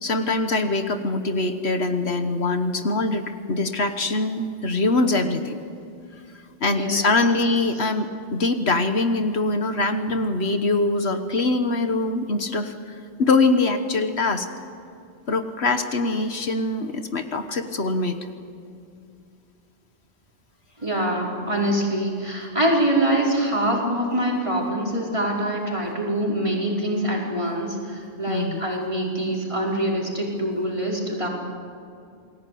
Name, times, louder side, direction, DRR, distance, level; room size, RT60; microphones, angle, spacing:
voice 1, 0.0-5.6 6.6-14.5 15.3-18.2 28.3-28.6, left 2 dB, 70° left, 7 dB, 1.6 m, -23 dB
voice 2, 6.7-7.3 20.8-31.3, right 1 dB, 25° right, -3 dB, 5.0 m, -24 dB
29.0 x 20.0 x 8.6 m, 2.5 s
omnidirectional pair, 1.1 m